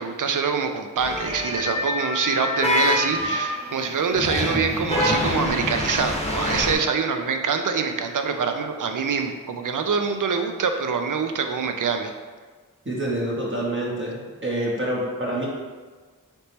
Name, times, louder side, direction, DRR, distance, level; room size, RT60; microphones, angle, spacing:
voice 1, 0.0-12.1, right 5 dB, 75° right, 6 dB, 0.5 m, -25 dB
sound 1, 1.0-1.7 2.6-3.6 4.1-6.7, left 1 dB, 20° left, 0.9 m, -25 dB
sound 2, 1.1-6.0 6.3-6.4, left 2 dB, 20° right, 0.5 m, -31 dB
voice 2, 12.8-15.5, right 1 dB, 35° right, -5 dB, 0.9 m, -27 dB
3.5 x 2.8 x 4.1 m, 1.4 s
wide cardioid pair, 45°, 32 cm